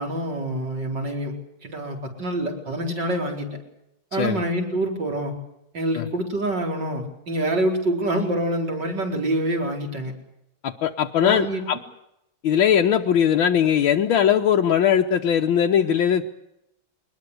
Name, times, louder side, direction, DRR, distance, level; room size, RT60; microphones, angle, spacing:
voice 1, 0.0-1.3 1.6-3.5 4.1-5.3 5.7-10.1 11.2-11.6, right 1 dB, 60° right, 2 dB, 5.0 m, -26 dB
voice 2, 4.1-4.4 6.0-6.1 10.6-11.8 12.4-16.2, left 9 dB, 80° left, 3 dB, 1.8 m, -20 dB
23.0 x 20.5 x 8.1 m, 0.83 s
omnidirectional pair, 2.2 m